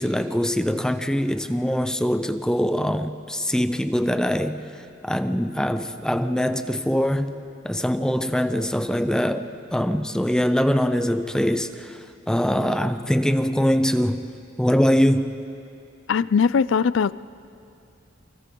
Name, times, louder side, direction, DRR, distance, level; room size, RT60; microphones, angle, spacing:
voice 1, 0.0-4.6 5.0-7.4 7.6-14.3 14.6-15.4, equal, 5° left, 9 dB, 0.6 m, -23 dB
voice 2, 16.1-17.2, left 6 dB, 70° left, 18 dB, 0.4 m, -20 dB
29.0 x 24.5 x 3.8 m, 2.5 s
head